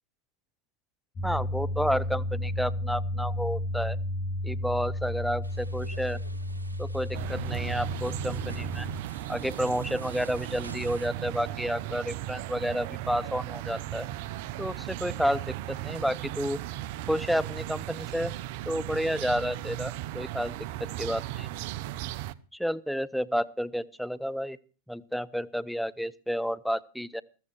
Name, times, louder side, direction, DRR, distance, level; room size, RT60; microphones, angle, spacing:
sound 1, 1.2-9.0, left 1 dB, 30° left, 3.2 m, -32 dB
voice 1, 1.2-4.0 4.4-6.2 6.8-8.9 9.3-14.1 14.6-16.6 17.1-18.3 18.7-20.5 20.8-21.5 22.5-24.6 24.9-27.2, equal, ahead, 17 dB, 0.8 m, -30 dB
sound 2, 5.4-11.1, right 3 dB, 80° right, 1.7 m, -48 dB
sound 3, 7.1-22.3, right 14 dB, 50° right, 0.7 m, -36 dB
14.5 x 14.5 x 4.8 m, 0.38 s
figure-of-eight pair, 90°, 0 cm